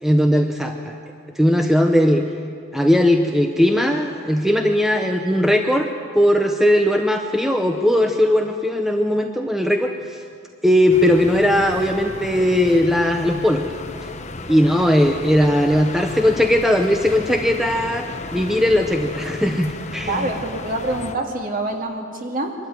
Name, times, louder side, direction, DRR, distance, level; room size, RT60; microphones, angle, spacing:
voice 1, 0.0-1.0 1.4-2.2 2.7-5.9 6.1-9.9 10.6-13.6 14.5-18.1 18.3-20.3, equal, ahead, 3 dB, 0.8 m, -18 dB
sound 1, 10.9-21.1, left 2 dB, 35° left, 1.0 m, -34 dB
voice 2, 20.1-22.5, right 2 dB, 40° right, 2 dB, 2.4 m, -26 dB
24.0 x 13.0 x 9.4 m, 2.3 s
head